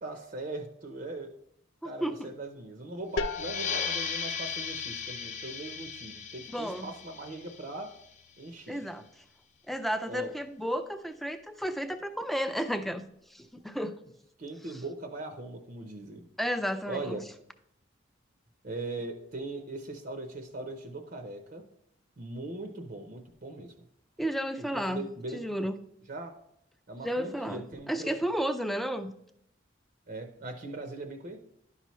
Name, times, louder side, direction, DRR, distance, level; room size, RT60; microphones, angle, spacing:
voice 1, 0.0-1.3 1.8-7.9 8.4-8.8 10.1-10.3 14.4-16.2 16.9-17.2 18.6-21.6 22.2-23.7 24.6-25.4 26.1-26.3 26.9-28.1 30.1-31.4, right 2 dB, 50° right, 5 dB, 0.7 m, -40 dB
voice 2, 1.8-2.3 6.5-6.9 8.7-9.0 9.7-13.0 13.3-14.0 16.4-17.2 24.2-25.8 27.0-29.1, equal, ahead, 9 dB, 0.4 m, -32 dB
sound 1, 3.2-8.7, left 3 dB, 90° left, 0.4 m, -42 dB
sound 2, 3.2-8.4, left 6 dB, 40° left, 0.7 m, -37 dB
11.0 x 5.6 x 3.1 m, 0.73 s
head